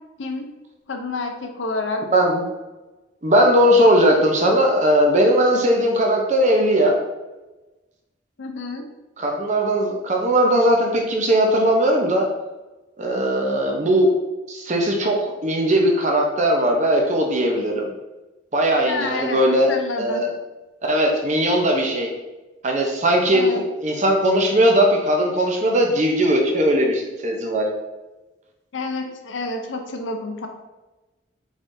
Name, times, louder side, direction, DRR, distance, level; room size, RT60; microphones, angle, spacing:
voice 1, 0.9-2.0 8.4-8.9 18.9-20.2 23.3-23.6 28.7-30.5, left 3 dB, 90° left, 4 dB, 0.6 m, -29 dB
voice 2, 2.1-2.4 3.2-7.0 9.2-12.3 13.0-14.1 14.5-17.9 18.5-19.7 20.0-20.3 20.8-22.1 22.6-23.4 23.8-27.7, right 1 dB, 40° right, 1 dB, 0.7 m, -19 dB
4.8 x 3.6 x 2.6 m, 1.1 s
head